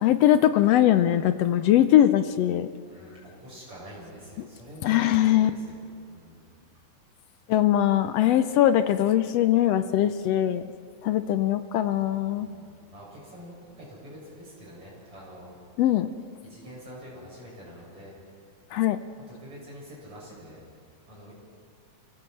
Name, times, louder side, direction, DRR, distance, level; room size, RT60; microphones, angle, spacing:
voice 1, 0.0-2.7 4.8-5.5 7.5-10.6 11.0-12.5 15.8-16.1 18.7-19.0, left 12 dB, 75° left, 10 dB, 1.5 m, -21 dB
voice 2, 2.9-6.5 12.4-15.6 16.2-18.2 19.4-20.6 21.1-21.3, equal, 50° right, -5 dB, 8.7 m, -46 dB
26.0 x 16.5 x 7.7 m, 2.2 s
omnidirectional pair, 3.4 m